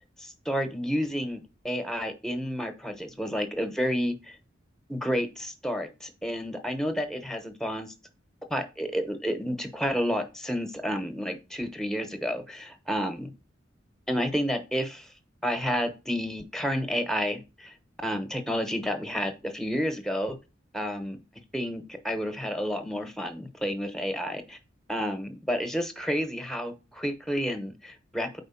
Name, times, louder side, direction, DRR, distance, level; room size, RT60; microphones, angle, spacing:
voice 1, 0.2-4.4 4.9-7.9 8.5-13.3 14.1-15.1 15.4-17.7 18.0-20.4 20.7-21.2 21.5-24.6 24.9-28.4, equal, 5° left, 7 dB, 0.8 m, -30 dB
4.4 x 4.2 x 5.7 m, 0.29 s
head